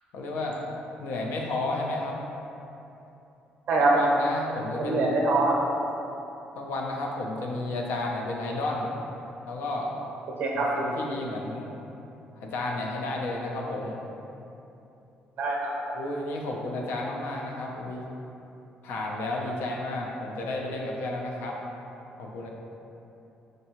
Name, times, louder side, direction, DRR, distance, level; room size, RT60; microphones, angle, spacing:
voice 1, 0.1-0.7 1.0-2.2 3.9-5.2 6.6-8.9 9.4-9.9 10.5-11.7 12.4-14.0 15.9-18.1 18.8-21.6 22.2-22.5, left 2 dB, 85° left, -1 dB, 0.5 m, -32 dB
voice 2, 4.8-5.6 10.4-10.7 15.4-15.9, right 3 dB, 65° right, -2 dB, 0.6 m, -24 dB
4.5 x 2.6 x 2.9 m, 2.9 s
cardioid pair, 125°, 4 cm